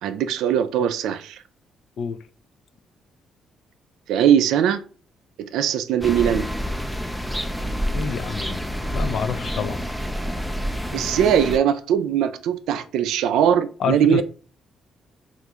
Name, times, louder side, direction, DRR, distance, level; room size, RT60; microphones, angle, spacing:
voice 1, 0.0-1.4 4.1-4.8 5.4-6.5 10.9-14.2, right 9 dB, 85° right, 0.3 m, -20 dB
sound 1, 6.0-11.6, equal, ahead, 0.4 m, -28 dB
voice 2, 7.9-8.6 8.9-9.8 11.0-11.1 13.8-14.2, left 6 dB, 65° left, 0.4 m, -27 dB
3.5 x 2.4 x 2.8 m
cardioid pair, 90°, 0 cm